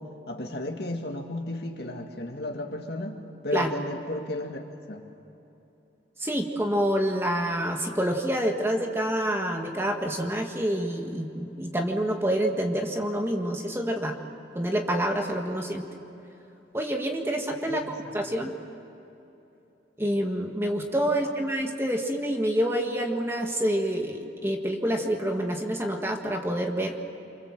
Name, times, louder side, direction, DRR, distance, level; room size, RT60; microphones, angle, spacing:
voice 1, 0.0-5.0 17.7-18.5, left 1 dB, 60° left, 3 dB, 2.2 m, -34 dB
voice 2, 6.2-14.2 14.6-15.9 16.7-18.5 20.0-27.0, equal, 15° right, 2 dB, 1.7 m, -27 dB
28.0 x 25.0 x 7.6 m, 2.9 s
head